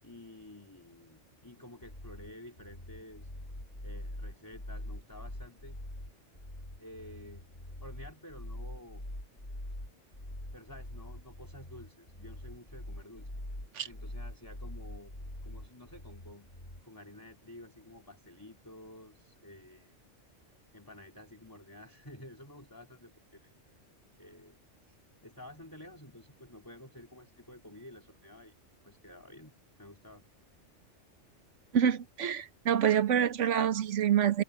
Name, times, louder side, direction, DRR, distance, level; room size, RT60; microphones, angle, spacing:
voice 1, 0.0-3.3 3.8-5.8 6.8-7.5 7.8-9.1 10.5-13.3 13.8-15.1 15.4-16.5 16.8-19.9 20.7-23.5 24.2-24.6 24.8-28.5 28.8-30.2, left 1 dB, 15° left, 3.9 m, -51 dB
sound 1, 1.8-16.8, left 1 dB, 40° left, 7.5 m, -44 dB
voice 2, 31.7-34.4, right 9 dB, 80° right, 1.3 m, -26 dB
omnidirectional pair, 1.3 m